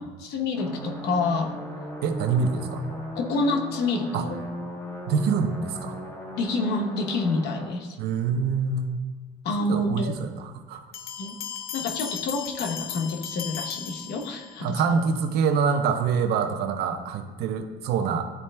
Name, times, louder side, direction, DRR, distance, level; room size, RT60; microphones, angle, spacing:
voice 1, 0.0-1.5 3.2-4.4 6.4-8.0 9.4-10.1 11.2-11.4 11.7-14.8, left 3 dB, 80° left, 2 dB, 0.9 m, -28 dB
sound 1, 0.5-7.7, equal, 20° left, 1.5 m, -37 dB
voice 2, 2.0-2.8 4.1-4.2 5.1-6.0 8.0-9.0 9.7-10.8 14.6-18.2, right 5 dB, 75° right, 7 dB, 0.7 m, -25 dB
sound 2, 10.9-14.7, left 9 dB, 60° left, 0.6 m, -36 dB
11.0 x 4.2 x 2.2 m, 1.3 s
cardioid pair, 110°, 17 cm